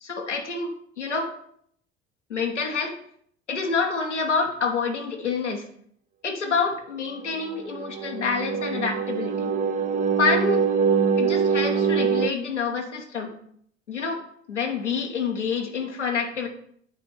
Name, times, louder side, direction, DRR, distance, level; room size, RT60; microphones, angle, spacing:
voice 1, 0.0-1.3 2.3-3.0 3.5-5.6 6.2-9.5 10.2-10.6 11.2-13.3 13.9-14.2 14.5-16.5, left 4 dB, 85° left, 2 dB, 1.0 m, -27 dB
sound 1, 7.3-12.3, right 6 dB, 25° right, 0.5 m, -24 dB
8.1 x 4.3 x 4.6 m, 0.65 s
figure-of-eight pair, 65°, 35 cm